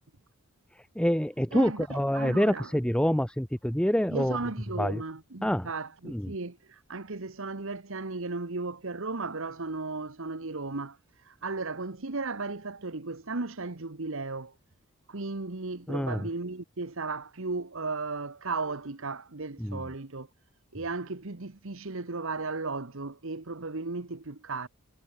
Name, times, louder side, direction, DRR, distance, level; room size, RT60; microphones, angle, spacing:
voice 1, 0.9-4.4 4.8-5.0 5.4-5.7 6.0-6.3 15.9-16.3 19.6-19.8, equal, 5° left, 1.2 m, -27 dB
voice 2, 1.5-2.7 4.1-14.5 15.1-20.3 20.7-24.7, right 3 dB, 60° right, 1.3 m, -35 dB
head